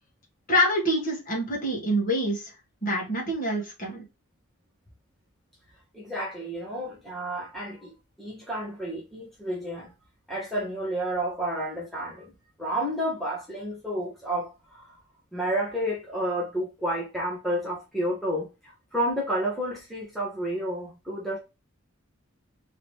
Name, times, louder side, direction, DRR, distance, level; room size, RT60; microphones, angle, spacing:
voice 1, 0.5-2.5 2.8-4.0, equal, 40° left, 1.9 m, -26 dB
voice 2, 5.9-9.9 10.3-12.3 12.6-14.9 15.3-21.4, equal, ahead, 0.9 m, -31 dB
3.9 x 3.2 x 2.9 m
head